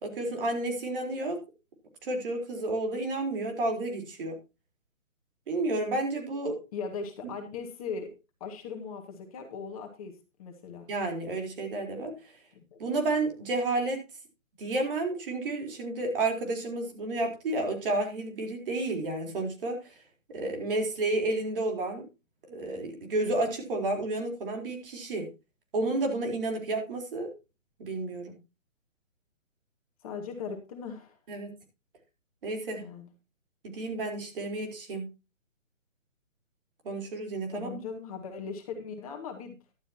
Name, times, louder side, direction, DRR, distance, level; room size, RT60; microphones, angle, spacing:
voice 1, 0.0-1.4 2.0-4.4 5.5-6.6 10.9-12.1 12.8-14.0 14.6-19.9 20.3-22.0 22.5-25.3 25.7-27.3 27.8-28.3 31.3-31.5 32.4-32.8 33.6-35.0 36.8-37.8, right 2 dB, 45° right, 2 dB, 4.1 m, -31 dB
voice 2, 6.7-8.1 8.4-10.9 12.5-12.8 30.0-31.2 32.8-33.1 37.5-39.6, left 5 dB, 30° left, 3 dB, 1.9 m, -39 dB
13.0 x 12.0 x 2.9 m, 0.28 s
hypercardioid pair, 155°, 39 cm